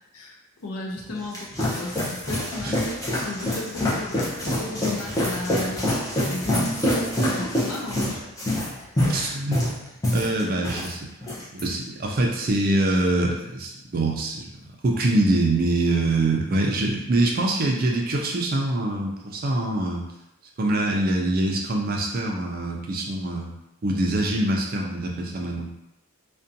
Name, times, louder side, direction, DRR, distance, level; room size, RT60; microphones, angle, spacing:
voice 1, 0.1-8.2, left 2 dB, 80° left, 0 dB, 0.5 m, -35 dB
sound 1, 1.0-10.9 11.2-11.6, left 1 dB, 15° left, 0.5 m, -26 dB
voice 2, 9.1-9.8 10.1-14.5 14.8-20.0 20.6-23.5 23.8-25.7, right 2 dB, 40° right, 0 dB, 0.4 m, -24 dB
2.5 x 2.1 x 2.5 m, 0.88 s
head